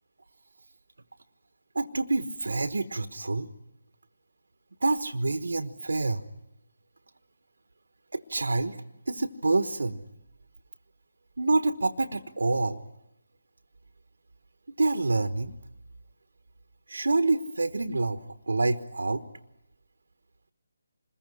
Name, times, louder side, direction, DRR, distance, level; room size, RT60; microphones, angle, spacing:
voice 1, 1.7-3.5 4.8-6.2 8.1-8.8 9.1-10.0 11.4-12.8 14.8-15.5 16.9-18.2 18.5-19.2, right 3 dB, 70° right, 9 dB, 1.2 m, -27 dB
27.0 x 21.5 x 9.8 m, 0.89 s
figure-of-eight pair, 150°, 0 cm